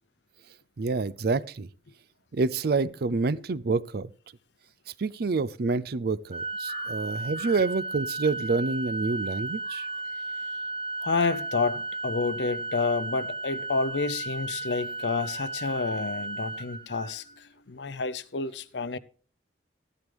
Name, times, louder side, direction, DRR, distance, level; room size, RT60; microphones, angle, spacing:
voice 1, 0.8-1.7 2.3-4.1 5.0-9.9, right 4 dB, 55° right, 0.5 m, -27 dB
Organ, 6.3-17.4, right 3 dB, 30° right, 1.2 m, -35 dB
voice 2, 11.0-19.0, left 4 dB, 70° left, 0.7 m, -30 dB
14.0 x 11.0 x 3.4 m
head